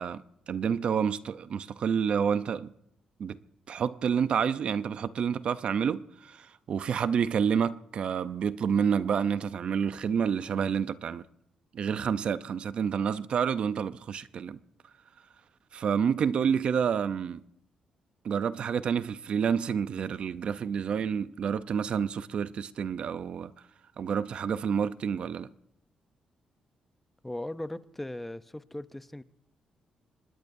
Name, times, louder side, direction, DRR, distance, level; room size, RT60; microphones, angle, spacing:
voice 1, 0.0-2.7 3.2-3.4 3.7-11.2 11.7-14.6 15.7-17.4 18.2-23.5 24.0-25.5, right 7 dB, 55° right, 0.6 m, -29 dB
voice 2, 27.2-29.2, left 1 dB, 10° left, 0.6 m, -38 dB
26.0 x 20.0 x 2.7 m
cardioid pair, 120°, 2 cm